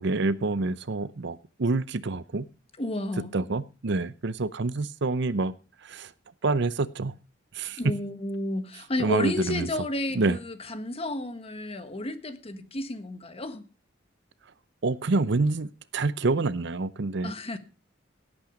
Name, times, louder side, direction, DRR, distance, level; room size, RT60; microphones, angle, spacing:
voice 1, 0.0-2.4 3.3-5.5 5.8-6.1 6.4-7.1 7.5-7.8 9.0-9.7 10.1-10.4 14.8-17.3, right 3 dB, 65° right, 0.7 m, -27 dB
voice 2, 2.8-3.3 7.8-13.6 17.2-17.6, left 1 dB, 30° left, 1.5 m, -32 dB
17.0 x 8.8 x 5.1 m
head